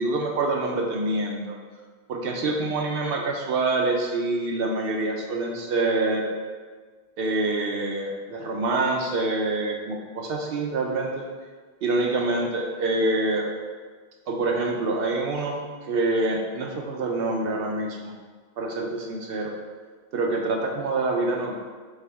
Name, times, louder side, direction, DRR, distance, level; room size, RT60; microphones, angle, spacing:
voice 1, 0.0-1.6 2.1-6.3 7.2-11.3 11.8-13.5 14.3-15.6 15.9-18.1 18.6-19.5 20.1-21.6, right 2 dB, 65° right, 1 dB, 0.7 m, -26 dB
5.4 x 2.2 x 3.4 m, 1.5 s
omnidirectional pair, 1.1 m